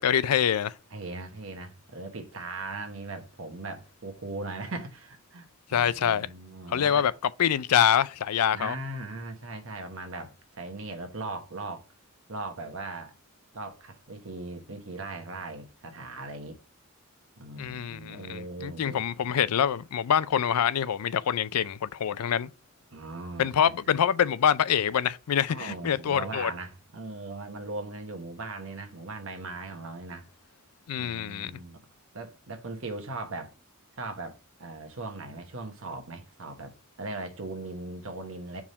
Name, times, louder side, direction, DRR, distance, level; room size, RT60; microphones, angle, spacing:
voice 1, 0.0-0.7 5.7-6.3 6.7-7.1 7.4-8.8 17.6-22.5 23.4-26.5 30.9-31.5, left 9 dB, 90° left, 0.4 m, -25 dB
voice 2, 0.9-7.1 8.5-11.8 12.3-13.1 13.5-16.6 17.4-19.0 22.9-24.0 25.5-30.3 31.0-31.8 32.1-33.5 34.0-38.6, right 2 dB, 60° right, 1.2 m, -39 dB
4.8 x 3.6 x 5.5 m
head